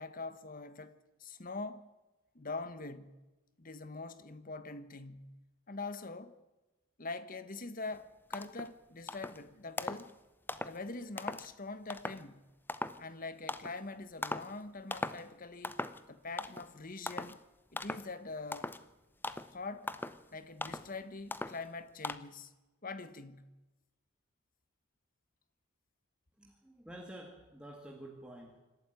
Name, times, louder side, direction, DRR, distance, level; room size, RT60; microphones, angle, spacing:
voice 1, 0.0-1.9 2.3-3.2 3.6-5.4 5.7-6.4 7.0-10.2 10.6-12.5 13.0-15.8 16.1-17.4 17.7-18.7 19.5-20.0 20.3-22.5 22.8-23.6, left 3 dB, 45° left, 1.4 m, -44 dB
sound 1, 7.9-8.0 8.3-8.7 9.1-9.4 9.8-10.1 10.5-10.8 11.2-11.5 11.9-12.2 12.7-13.0 13.5-13.8 14.2-14.5 14.9-15.3 15.6-16.0 16.4-16.7 17.1-17.4 17.8-18.1 18.5-18.8 19.2-19.5 19.9-20.2 20.6-20.9 21.3-21.6 22.0-22.2, left 2 dB, 10° left, 0.7 m, -39 dB
voice 2, 26.3-28.6, right 1 dB, 5° right, 2.1 m, -50 dB
26.5 x 12.5 x 9.3 m
head